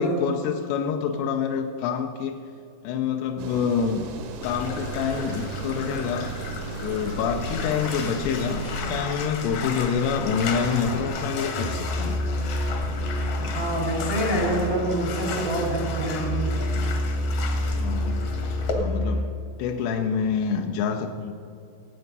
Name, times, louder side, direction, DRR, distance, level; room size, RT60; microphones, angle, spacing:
voice 1, 0.0-2.4 2.8-4.1 4.4-6.3 6.8-12.2 17.8-18.2 18.7-19.3 19.6-21.3, left 6 dB, 80° left, 4 dB, 2.4 m, -27 dB
sound 1, 3.4-8.8, right 4 dB, 75° right, 1.9 m, -38 dB
Bathtub (filling or washing), 4.4-18.7, left 2 dB, 60° left, 1.8 m, -33 dB
Musical instrument, 11.6-19.4, left 1 dB, 5° right, 0.8 m, -28 dB
voice 2, 13.4-16.5, right 1 dB, 45° right, -2 dB, 0.7 m, -26 dB
18.5 x 8.0 x 5.4 m, 2.6 s
omnidirectional pair, 5.4 m